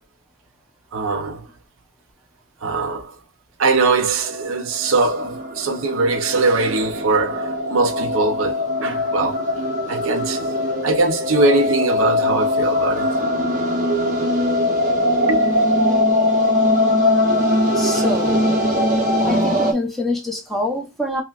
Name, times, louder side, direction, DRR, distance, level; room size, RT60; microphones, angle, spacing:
voice 1, 0.9-1.4 2.6-3.1 3.6-9.4 9.9-10.5 10.8-13.1 15.3-15.5 17.9-18.0, right 3 dB, 70° right, 0.6 m, -21 dB
sound 1, 4.2-19.7, left 1 dB, 35° right, 0.8 m, -21 dB
voice 2, 17.7-18.6 19.3-21.2, left 1 dB, ahead, 0.8 m, -25 dB
5.5 x 2.2 x 2.4 m
head